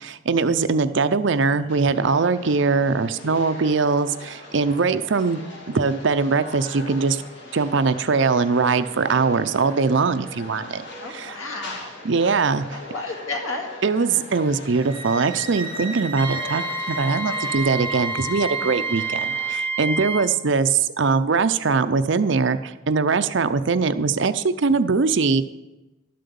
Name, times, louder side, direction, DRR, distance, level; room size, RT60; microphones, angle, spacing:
voice 1, 0.0-7.2 7.5-10.8 11.1-11.4 12.0-12.7 13.8-25.4, right 4 dB, 60° right, 11 dB, 0.5 m, -21 dB
sound 1, 1.7-19.5, left 2 dB, 55° left, 2.5 m, -41 dB
voice 2, 11.0-12.1 12.7-13.7, left 3 dB, 90° left, 3 dB, 2.1 m, -32 dB
sound 2, 14.7-19.6, right 2 dB, 25° right, 1.5 m, -36 dB
Wind instrument woodwind instrument, 16.2-20.3, right 3 dB, 10° left, 0.7 m, -28 dB
12.5 x 7.7 x 6.9 m, 1.0 s
head